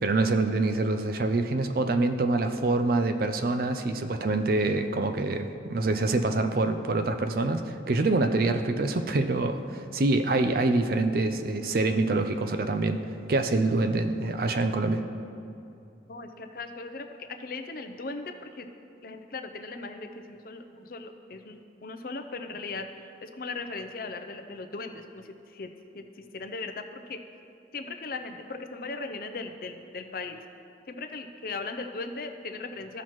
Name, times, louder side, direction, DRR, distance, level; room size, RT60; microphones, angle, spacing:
voice 1, 0.0-13.0 13.3-15.0, right 2 dB, 50° right, 8 dB, 0.4 m, -26 dB
voice 2, 16.1-18.7 19.0-22.9 23.2-25.7 25.9-26.0 26.3-27.2 27.7-30.4 30.9-33.0, left 3 dB, 50° left, 6 dB, 0.6 m, -38 dB
15.0 x 5.8 x 3.1 m, 2.7 s
head